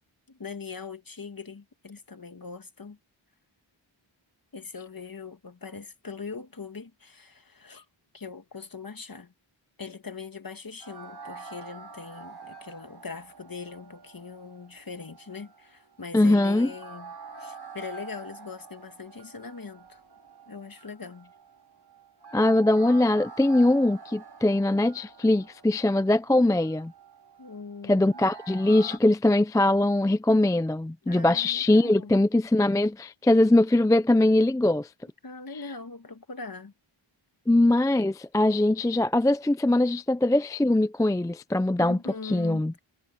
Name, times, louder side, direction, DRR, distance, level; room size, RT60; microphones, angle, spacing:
voice 1, 0.3-3.0 4.5-7.9 8.1-9.3 9.8-17.1 17.4-20.0 20.5-21.3 27.4-28.3 31.0-32.3 35.2-36.7 41.8-42.6, left 4 dB, 45° left, 1.9 m, -41 dB
sound 1, 10.8-29.0, right 4 dB, 50° right, 2.8 m, -46 dB
voice 2, 16.1-16.7 22.3-26.9 27.9-34.9 37.5-42.7, left 1 dB, 10° left, 0.4 m, -22 dB
wide cardioid pair, 80°, 50 cm